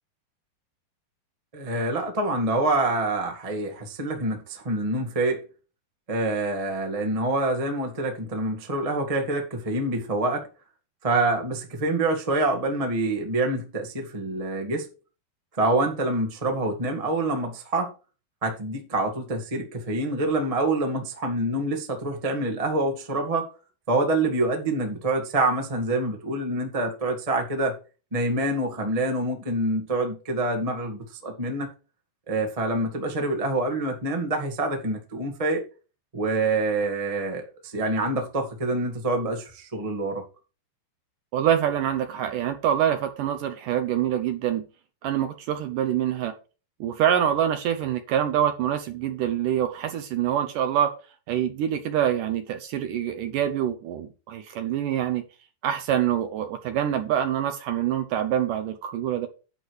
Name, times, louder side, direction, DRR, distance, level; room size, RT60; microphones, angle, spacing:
voice 1, 1.5-5.4 6.1-10.5 11.0-14.9 15.6-17.9 18.4-23.5 23.9-27.8 28.1-31.7 32.3-35.6 36.1-40.2, right 2 dB, 55° right, 0.3 m, -26 dB
voice 2, 41.3-44.7 45.0-46.3 46.8-50.9 51.3-55.2 55.6-59.3, right 10 dB, 75° right, 2.0 m, -25 dB
10.5 x 4.9 x 6.3 m
omnidirectional pair, 4.6 m